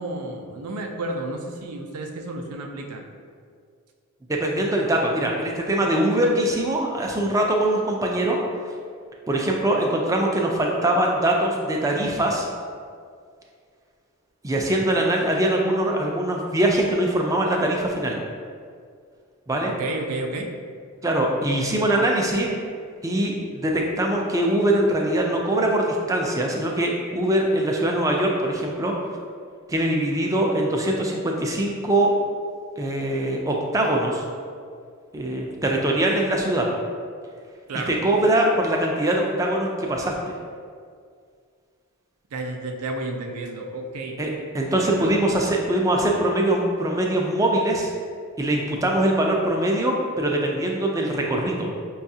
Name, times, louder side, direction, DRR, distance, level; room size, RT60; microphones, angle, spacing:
voice 1, 0.0-3.0 19.8-20.5 37.7-37.9 42.3-44.2 44.9-45.1, right 2 dB, 85° right, 3 dB, 0.4 m, -31 dB
voice 2, 4.3-8.4 9.3-12.5 14.4-18.2 19.5-19.7 21.0-22.5 23.0-28.9 29.7-32.1 32.8-34.2 35.1-36.7 37.9-40.1 44.2-47.9 48.4-51.7, right 1 dB, 15° right, 0 dB, 0.3 m, -22 dB
5.4 x 2.3 x 2.7 m, 2.1 s
head